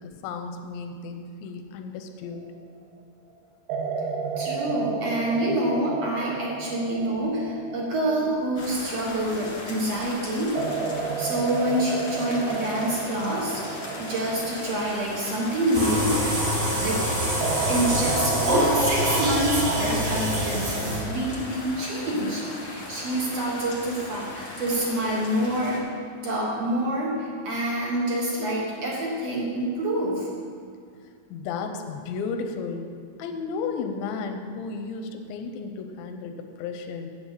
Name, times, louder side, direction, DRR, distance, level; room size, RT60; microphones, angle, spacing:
voice 1, 0.0-2.5 6.8-6.9 7.8-7.9 27.8-27.9 31.3-32.9 33.2-37.1, left 5 dB, 85° left, 6 dB, 2.9 m, -34 dB
sound 1, 2.3-2.8 3.7-9.6 10.6-16.6 17.4-21.3, right 4 dB, 80° right, 2.8 m, -32 dB
voice 2, 4.4-10.5 11.2-13.6 14.0-16.1 16.8-17.0 17.7-25.8 26.2-30.3, right 1 dB, 60° right, -4 dB, 1.7 m, -27 dB
sound 2, 8.6-25.8, left 2 dB, 45° left, 1.5 m, -38 dB
sound 3, 15.7-21.3, equal, 30° right, 1.6 m, -25 dB
7.7 x 7.1 x 8.0 m, 2.2 s
omnidirectional pair, 4.9 m